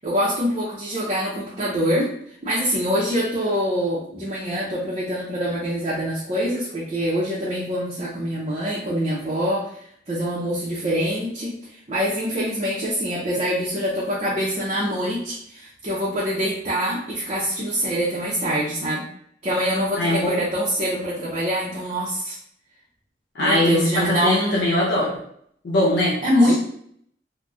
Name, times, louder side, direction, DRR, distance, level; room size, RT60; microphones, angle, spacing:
voice 1, 0.0-2.1 2.4-11.6 11.9-19.0 19.4-22.4 23.4-24.6 26.2-26.6, equal, 35° right, -6 dB, 0.5 m, -24 dB
voice 2, 20.0-20.4 23.3-25.1 25.6-26.2, left 1 dB, 75° left, -6 dB, 0.7 m, -21 dB
3.9 x 2.1 x 2.3 m, 0.66 s
head